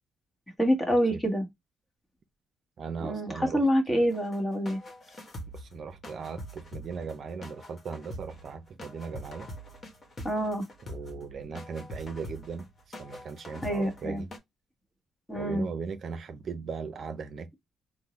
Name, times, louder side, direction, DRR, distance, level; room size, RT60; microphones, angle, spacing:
voice 1, 0.6-1.5 3.0-4.8 10.2-10.6 13.6-14.2 15.3-15.6, equal, 15° left, 1.3 m, -26 dB
voice 2, 2.8-4.1 5.5-9.5 10.8-12.7 13.0-14.3 15.3-17.5, right 5 dB, 55° right, 0.5 m, -38 dB
sound 1, 4.1-14.4, equal, 40° left, 1.1 m, -44 dB
3.6 x 2.1 x 3.0 m
cardioid pair, 90°, 0 cm